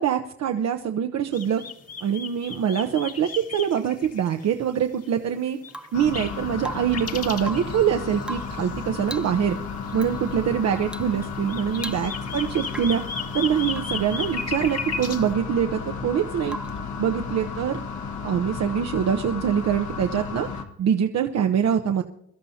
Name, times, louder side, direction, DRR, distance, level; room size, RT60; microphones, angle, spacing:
voice 1, 0.0-1.6 2.0-5.6 5.9-9.6 9.9-13.0 13.3-16.6 17.0-17.8 18.2-22.0, right 8 dB, 60° right, 5 dB, 0.8 m, -24 dB
sound 1, 1.3-4.7 5.0-5.1 5.6-8.7 9.0-9.3 9.9-10.2 10.7-10.8 11.2-15.3, left 5 dB, 55° left, 1.7 m, -35 dB
Rain / Water tap faucet / Drip, 5.7-6.1 6.6-7.1 7.4-7.8 8.2-8.7 9.0-9.4 9.9-10.1 10.9-11.2 11.4-11.5 11.8-12.3 12.7-13.1 13.7-14.0 16.5-16.9 18.8-18.9, right 1 dB, 5° right, 0.5 m, -38 dB
sound 2, 5.9-20.6, left 5 dB, 75° left, 1.6 m, -33 dB
23.0 x 12.5 x 2.8 m, 0.75 s
cardioid pair, 90°, 30 cm